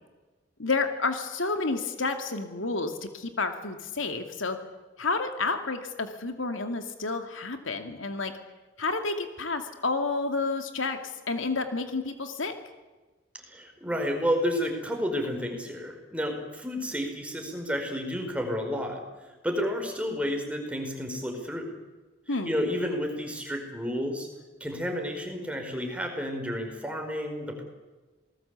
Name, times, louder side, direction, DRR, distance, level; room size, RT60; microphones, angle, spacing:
voice 1, 0.6-4.6 5.0-8.3 8.8-11.0 11.3-12.5 22.3-22.5, left 3 dB, 90° left, 6 dB, 2.5 m, -30 dB
voice 2, 13.5-21.7 22.4-24.3 24.6-27.6, equal, 5° right, 3 dB, 4.9 m, -31 dB
27.5 x 19.5 x 8.3 m, 1.2 s
head